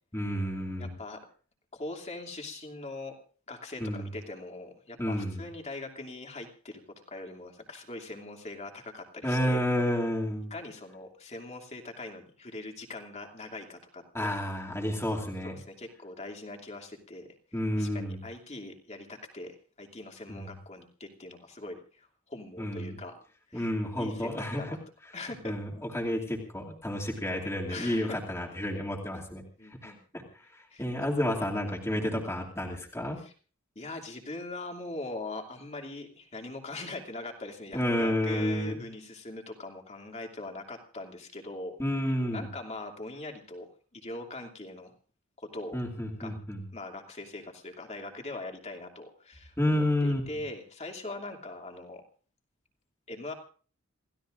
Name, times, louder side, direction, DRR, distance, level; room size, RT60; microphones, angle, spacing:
voice 1, 0.1-0.9 3.8-4.1 5.0-5.4 9.2-10.5 14.1-15.5 17.5-18.2 20.3-20.5 22.6-23.0 23.5-24.8 25.4-29.4 29.8-30.2 30.8-33.2 37.7-38.8 41.8-42.4 45.7-46.6 49.6-50.2, left 1 dB, 15° left, -2 dB, 2.5 m, -30 dB
voice 2, 0.8-1.2 1.7-3.2 3.5-6.8 7.1-9.6 10.5-14.3 15.4-17.3 17.8-23.2 23.5-23.7 24.0-24.8 25.1-25.5 27.7-28.2 29.6-30.0 30.7-30.8 33.2-33.3 33.8-43.7 43.9-44.9 45.4-45.8 46.2-46.3 46.7-52.0 53.1-53.3, left 2 dB, 30° left, 2 dB, 2.6 m, -41 dB
28.0 x 16.0 x 2.6 m, 0.40 s
head